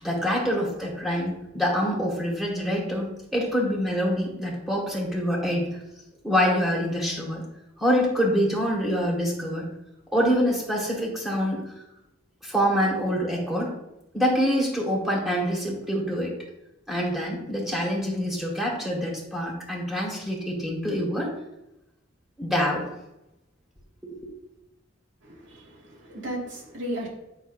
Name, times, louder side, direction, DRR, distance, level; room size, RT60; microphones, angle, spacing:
voice 1, 0.0-5.8 6.2-7.4 7.8-9.7 10.1-11.6 12.4-13.7 14.1-16.4 16.9-21.3 22.4-22.9 24.1-24.2, equal, ahead, -3 dB, 1.8 m, -25 dB
voice 2, 25.2-27.1, right 1 dB, 75° right, -3 dB, 2.3 m, -35 dB
8.0 x 5.9 x 2.7 m, 0.92 s
head